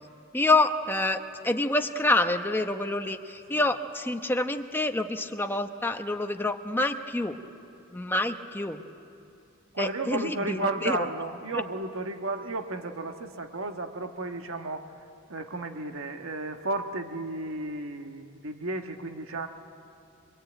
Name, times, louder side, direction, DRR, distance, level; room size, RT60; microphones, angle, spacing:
voice 1, 0.3-7.4 7.9-8.8 9.8-11.0, left 2 dB, 10° left, 5 dB, 1.0 m, -27 dB
voice 2, 9.7-19.5, right 2 dB, 65° right, 5 dB, 1.4 m, -33 dB
24.0 x 22.5 x 9.0 m, 2.6 s
head